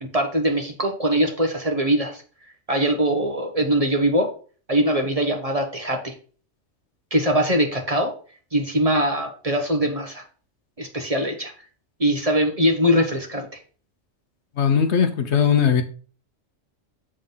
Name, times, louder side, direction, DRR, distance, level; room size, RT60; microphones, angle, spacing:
voice 1, 0.0-2.2 2.7-4.3 4.7-6.1 7.1-8.1 8.5-10.2 10.8-11.5 12.0-13.6, equal, 30° right, 1.1 m, -22 dB
voice 2, 14.6-15.8, left 7 dB, 65° left, 1.0 m, -19 dB
7.7 x 3.7 x 5.5 m
omnidirectional pair, 1.3 m